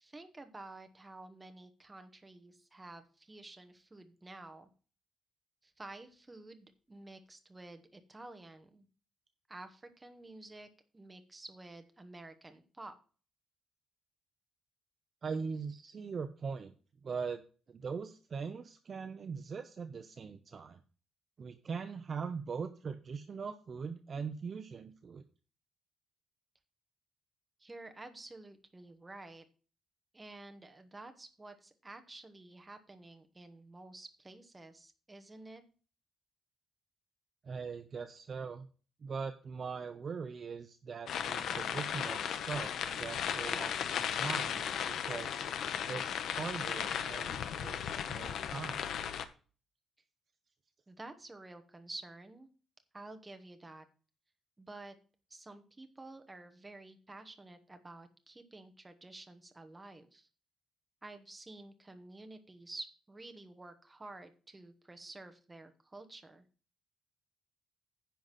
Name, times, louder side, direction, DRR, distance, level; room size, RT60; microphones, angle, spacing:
voice 1, 0.0-4.7 5.6-8.9 9.5-10.7 10.9-12.9 27.6-29.4 30.1-35.6 50.9-52.5 52.9-53.8 54.6-54.9 55.3-60.3 61.0-66.4, right 2 dB, 15° right, 7 dB, 1.1 m, -51 dB
voice 2, 15.2-16.7 17.0-17.4 17.7-20.8 21.4-25.2 37.4-38.7 39.0-45.4 45.9-48.8, right 5 dB, 35° right, 8 dB, 0.6 m, -41 dB
sound 1, 41.1-49.3, left 8 dB, 65° left, 0.9 m, -36 dB
10.5 x 4.0 x 7.4 m, 0.37 s
cardioid pair, 180°, 0 cm